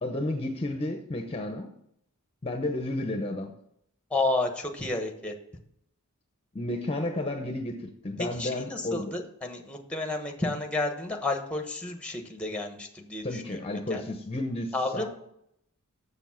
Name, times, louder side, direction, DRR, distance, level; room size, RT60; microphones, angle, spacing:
voice 1, 0.0-1.7 2.4-3.5 6.5-9.1 13.2-15.1, left 1 dB, 25° left, 4 dB, 0.8 m, -32 dB
voice 2, 4.1-5.3 8.2-14.0 14.7-15.1, left 2 dB, 5° left, 4 dB, 1.1 m, -31 dB
7.1 x 6.9 x 5.7 m, 0.74 s
head